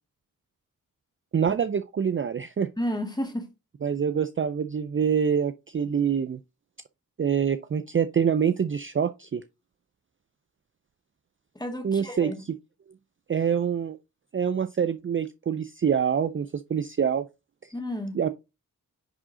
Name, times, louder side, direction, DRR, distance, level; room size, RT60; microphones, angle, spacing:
voice 1, 1.3-2.7 3.8-6.4 7.2-9.4 11.8-12.3 13.3-14.0 14.3-17.2 18.1-18.3, right 7 dB, 35° right, 0.4 m, -25 dB
voice 2, 2.8-3.5 11.6-12.4 17.7-18.2, left 1 dB, 10° left, 2.1 m, -31 dB
9.9 x 3.6 x 3.7 m
cardioid pair, 50°, 35 cm